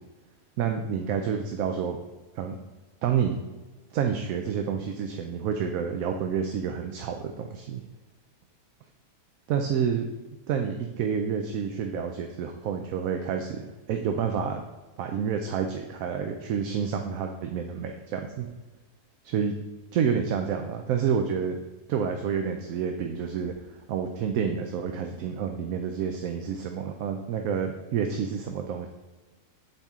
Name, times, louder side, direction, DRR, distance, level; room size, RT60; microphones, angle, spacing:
voice 1, 0.6-2.0 2.4-2.5 3.0-3.4 3.9-7.8 9.5-10.1 10.5-13.6 13.9-14.6 15.0-18.5 19.2-19.5 19.9-21.6 21.9-23.5 23.9-28.9, right 7 dB, 70° right, 5 dB, 0.9 m, -29 dB
8.1 x 4.3 x 3.5 m, 1.2 s
omnidirectional pair, 1.6 m